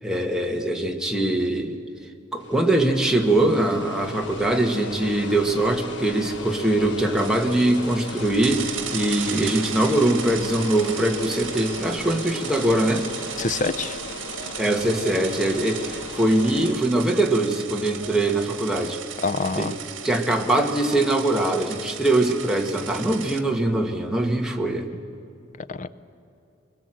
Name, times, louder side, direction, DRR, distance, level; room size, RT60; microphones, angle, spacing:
voice 1, 0.0-1.8 2.3-13.0 14.6-19.0 19.5-19.7 20.0-24.9, right 1 dB, 5° right, 1 dB, 1.5 m, -22 dB
sound 1, 2.4-16.7, left 3 dB, 65° left, 1.4 m, -38 dB
sound 2, 4.0-23.0, right 1 dB, 35° right, 4.1 m, -47 dB
sound 3, 7.2-23.4, right 8 dB, 75° right, 1.7 m, -36 dB
voice 2, 13.4-14.0 19.2-19.8 25.7-25.9, left 4 dB, 40° left, 13 dB, 0.6 m, -26 dB
23.5 x 21.0 x 7.7 m, 2.7 s
head